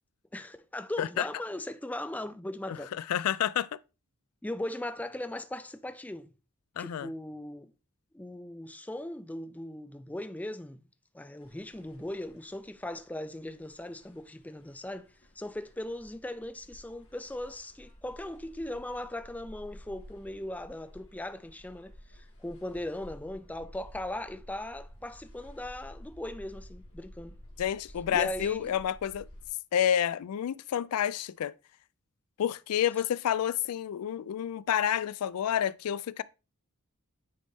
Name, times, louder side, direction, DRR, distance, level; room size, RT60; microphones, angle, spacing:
voice 1, 0.3-3.0 4.4-6.3 6.8-7.7 8.1-10.8 11.1-15.1 15.4-27.4 28.1-28.7, left 1 dB, 5° left, 0.4 m, -39 dB
voice 2, 3.0-3.7 6.8-7.1 27.6-29.3 29.7-31.5 32.4-36.2, left 9 dB, 85° left, 0.3 m, -29 dB
sound 1, 11.4-29.5, equal, 65° left, 2.6 m, -52 dB
9.4 x 4.0 x 3.5 m
head